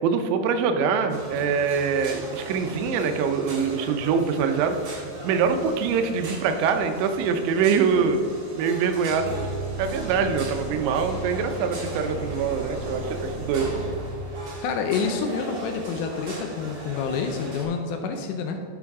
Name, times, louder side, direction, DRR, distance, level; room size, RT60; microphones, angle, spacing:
voice 1, 0.0-5.0 5.2-8.2 8.6-9.5 9.8-13.7, right 6 dB, 85° right, 7 dB, 2.9 m, -24 dB
sound 1, 1.1-17.6, right 2 dB, 60° right, 1.2 m, -38 dB
sound 2, 9.1-14.2, right 1 dB, 60° left, 2.8 m, -35 dB
voice 2, 14.6-18.7, left 5 dB, 80° left, 4 dB, 2.6 m, -28 dB
11.0 x 6.1 x 3.6 m, 2.4 s
omnidirectional pair, 5.2 m